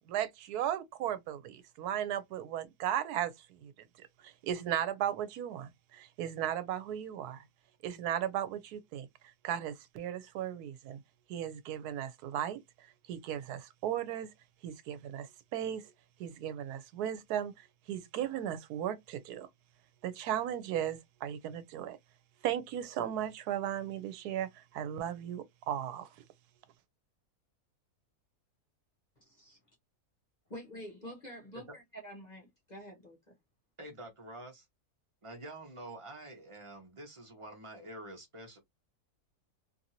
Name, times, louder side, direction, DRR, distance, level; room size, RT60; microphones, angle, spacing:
voice 1, 0.1-3.3 3.6-3.7 4.2-7.4 7.8-9.1 9.4-11.0 11.3-12.6 13.1-14.3 14.6-15.9 16.2-19.5 20.0-22.0 22.4-26.1, right 10 dB, 85° right, 1.1 m, -36 dB
voice 2, 29.2-29.6 30.5-33.4, equal, 35° left, 0.8 m, -48 dB
voice 3, 33.8-34.7 35.2-38.6, right 1 dB, 25° right, 0.8 m, -47 dB
2.8 x 2.6 x 2.7 m
omnidirectional pair, 1.6 m